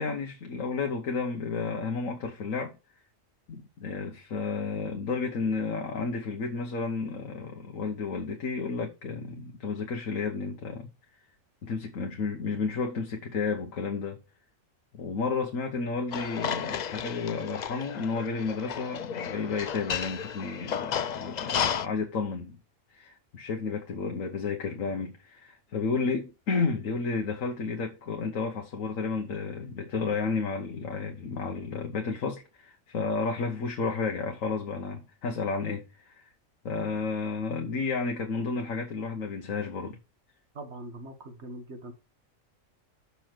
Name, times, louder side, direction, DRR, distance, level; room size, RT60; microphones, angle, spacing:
voice 1, 0.0-2.8 3.5-10.9 11.6-14.2 14.9-22.6 22.9-36.2 36.6-40.0, left 4 dB, 85° left, 1.4 m, -32 dB
sound 1, 16.1-21.9, left 8 dB, 60° left, 0.4 m, -33 dB
voice 2, 40.5-41.9, right 1 dB, 55° right, 1.8 m, -42 dB
7.0 x 5.4 x 6.0 m
omnidirectional pair, 1.3 m